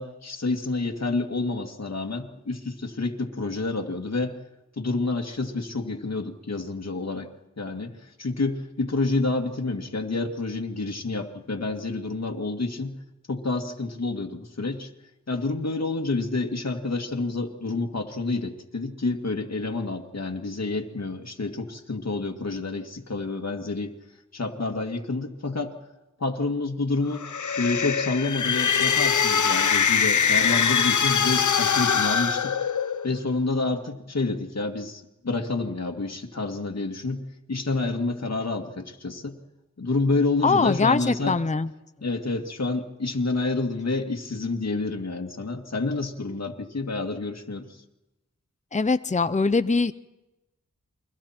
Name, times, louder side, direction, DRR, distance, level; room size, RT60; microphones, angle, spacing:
voice 1, 0.0-4.4 4.8-7.3 7.6-12.9 13.3-14.9 15.3-24.0 24.3-25.7 26.2-32.5 33.0-37.2 37.5-39.4 39.8-41.4 42.0-47.8, left 3 dB, 60° left, 3 dB, 2.3 m, -28 dB
sound 1, 27.1-33.2, left 7 dB, 80° left, 0.9 m, -23 dB
voice 2, 40.4-41.7 48.7-49.9, left 4 dB, 25° left, 13 dB, 0.7 m, -22 dB
29.5 x 23.0 x 4.5 m, 0.98 s
wide cardioid pair, 55°, 30 cm